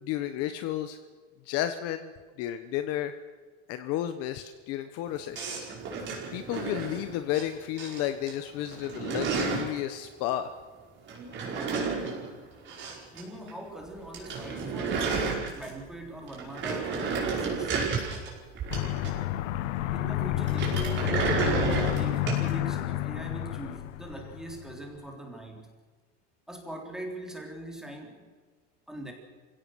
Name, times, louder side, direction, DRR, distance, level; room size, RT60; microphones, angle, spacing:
voice 1, 0.0-1.0 1.5-2.1 2.4-3.1 3.7-5.7 6.3-10.5, left 12 dB, 40° left, 9 dB, 1.1 m, -32 dB
sound 1, 5.3-7.4 7.8-8.3 8.6-9.8 11.1-13.2 13.5-13.6 13.9-14.0 14.1-15.9 16.3-19.4 20.4-22.5, right 5 dB, 30° right, 5.3 m, -31 dB
voice 2, 13.1-15.3 15.5-17.8 18.8-19.1 19.9-25.7 26.5-28.3 28.9-29.1, right 1 dB, ahead, 1 dB, 3.5 m, -41 dB
Aircraft, 18.7-24.8, left 14 dB, 85° left, 1.2 m, -30 dB
27.5 x 17.0 x 6.3 m, 1.5 s
supercardioid pair, 160°, 36 cm